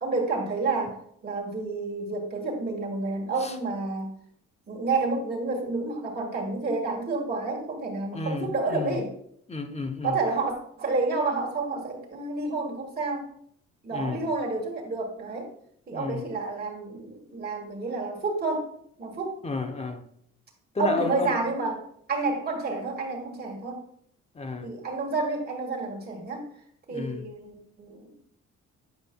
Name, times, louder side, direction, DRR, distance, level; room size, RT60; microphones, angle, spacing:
voice 1, 0.0-4.1 4.7-9.1 10.0-13.3 13.8-15.5 15.9-18.7 19.0-19.4 20.8-23.8 24.6-26.5 26.9-28.1, right 3 dB, 30° right, -1 dB, 2.0 m, -29 dB
voice 2, 8.1-9.0 9.5-10.2 13.9-14.3 15.9-16.2 19.4-20.0 20.7-21.4 24.3-24.7 26.9-27.3, left 3 dB, 20° left, 6 dB, 0.9 m, -32 dB
9.2 x 5.0 x 2.3 m, 0.67 s
cardioid pair, 90°, 30 cm